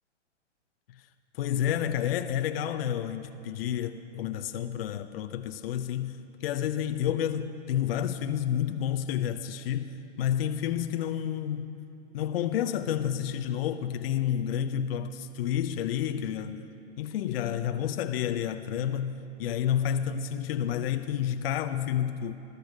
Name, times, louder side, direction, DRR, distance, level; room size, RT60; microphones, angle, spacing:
voice 1, 1.3-11.7 12.1-16.6 17.0-22.4, left 10 dB, 55° left, 0.7 m, -30 dB
20.5 x 13.0 x 4.8 m
hypercardioid pair, 120°, 36 cm